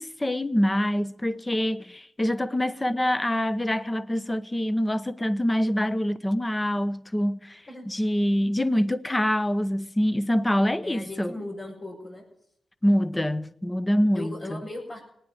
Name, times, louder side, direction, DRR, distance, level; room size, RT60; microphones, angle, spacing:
voice 1, 0.0-11.3 12.8-14.6, equal, 15° left, 0.8 m, -25 dB
voice 2, 10.8-12.2 14.1-15.0, left 1 dB, 60° left, 6.3 m, -37 dB
18.5 x 9.8 x 7.7 m
cardioid pair, 70°, 0 cm